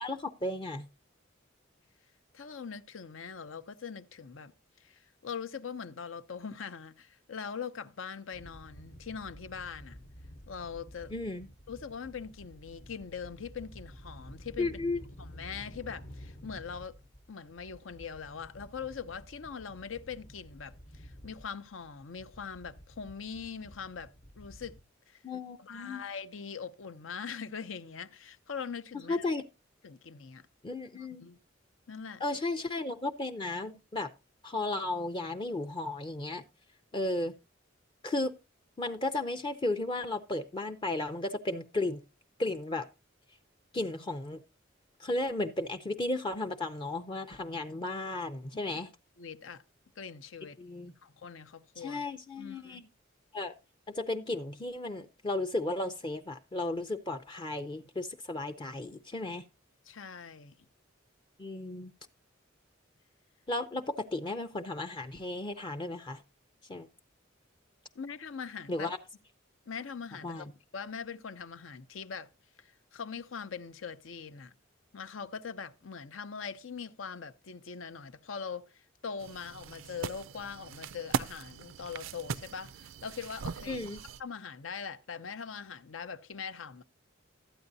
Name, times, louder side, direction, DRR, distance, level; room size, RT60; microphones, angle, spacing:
voice 1, 0.0-0.9 11.1-11.5 14.6-15.0 25.2-26.0 29.1-29.4 30.6-31.3 32.2-34.1 34.4-36.4 36.9-37.3 38.0-38.3 38.8-42.0 42.4-42.9 43.7-44.4 45.0-48.9 50.6-50.9 51.8-52.9 53.3-53.5 53.9-59.4 61.4-61.9 63.5-66.2 66.7-66.9 68.7-69.0 70.2-70.5 83.7-84.0, left 2 dB, 25° left, 0.5 m, -34 dB
voice 2, 2.3-4.5 4.8-10.0 10.5-11.1 11.7-14.7 15.2-16.9 17.3-24.7 25.1-25.2 25.6-29.3 29.8-30.5 30.9-31.4 31.9-32.2 49.2-49.6 50.0-50.6 51.0-52.1 52.4-52.8 59.8-60.6 67.9-68.9 69.7-70.5 70.7-72.3 72.6-74.5 74.9-83.9 84.2-86.8, left 6 dB, 80° left, 0.6 m, -42 dB
sound 1, 8.3-24.8, equal, 45° left, 0.9 m, -51 dB
sound 2, 79.2-84.2, right 6 dB, 80° right, 0.4 m, -39 dB
13.0 x 8.8 x 2.7 m
head